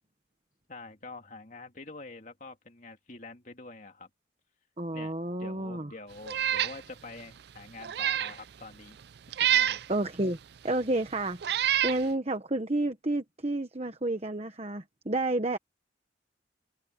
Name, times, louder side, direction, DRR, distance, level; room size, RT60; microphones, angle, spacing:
voice 1, 0.7-4.1 4.9-5.1 5.4-9.0 9.4-9.8, left 3 dB, 40° left, 2.6 m, -46 dB
voice 2, 4.8-5.9 9.9-10.4 10.6-11.4 11.8-15.6, right 2 dB, 35° right, 1.1 m, -30 dB
Meow, 6.3-6.8 7.2-7.3 7.8-8.4 9.3-9.8 10.7-10.8 11.4-12.0, right 11 dB, 60° right, 0.4 m, -26 dB
head